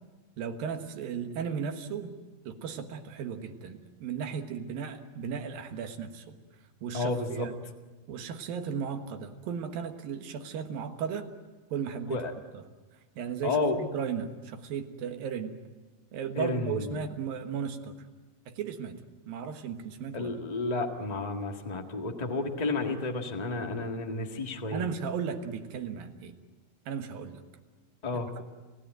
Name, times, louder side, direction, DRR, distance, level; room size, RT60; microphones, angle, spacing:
voice 1, 0.4-2.2 2.5-6.3 6.8-7.5 8.1-11.3 11.7-12.2 12.5-12.6 13.2-15.6 16.1-17.9 18.5-19.0 19.3-20.3 24.7-26.3 26.9-27.4 28.1-28.4, right 7 dB, 75° right, 6 dB, 3.2 m, -35 dB
voice 2, 6.9-7.5 12.1-12.3 13.4-13.8 16.3-17.0 20.1-24.9 28.0-28.3, left 3 dB, 35° left, 3 dB, 0.6 m, -31 dB
29.5 x 16.5 x 9.1 m, 1.3 s
omnidirectional pair, 4.2 m